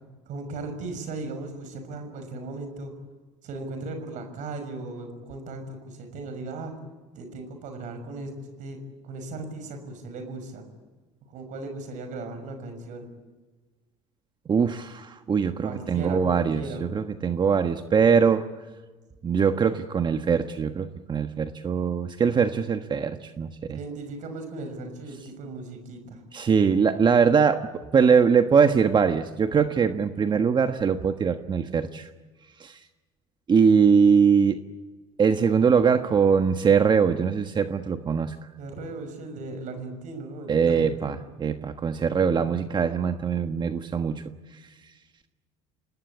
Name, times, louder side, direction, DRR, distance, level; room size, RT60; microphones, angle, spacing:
voice 1, 0.3-2.9 3.4-6.7 7.1-10.6 11.3-13.1 15.6-16.9 23.7-26.2 38.6-41.1 42.3-42.6, right 3 dB, 55° right, 7 dB, 6.1 m, -37 dB
voice 2, 14.5-18.4 19.2-23.8 26.3-32.1 32.6-32.8 33.5-34.6 35.2-38.4 40.5-44.2, right 6 dB, 30° right, 8 dB, 1.4 m, -22 dB
27.5 x 19.0 x 8.5 m, 1.3 s
supercardioid pair, 85°, 15 cm